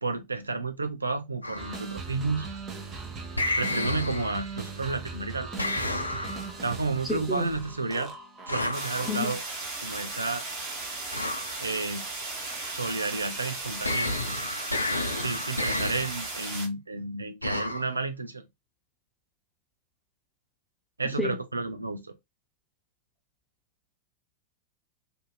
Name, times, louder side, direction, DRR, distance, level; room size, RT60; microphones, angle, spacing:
voice 1, 0.0-2.5 3.6-5.5 6.6-8.1 8.5-9.4 9.8-10.5 11.6-12.0 12.7-14.1 15.2-18.4 21.0-22.1, right 3 dB, 80° right, 0.5 m, -31 dB
sound 1, 1.4-1.8 3.4-4.6 5.6-6.6 8.5-9.0 11.1-11.6 13.8-16.3 17.4-17.9, left 2 dB, 80° left, 0.4 m, -31 dB
sound 2, 1.6-9.6, right 4 dB, 25° right, 0.8 m, -39 dB
voice 2, 7.0-7.5 9.1-9.4 21.2-21.3, left 2 dB, ahead, 1.0 m, -30 dB
sound 3, 8.7-16.7, right 3 dB, 45° right, 1.5 m, -36 dB
2.7 x 2.6 x 2.3 m
figure-of-eight pair, 90°, 0 cm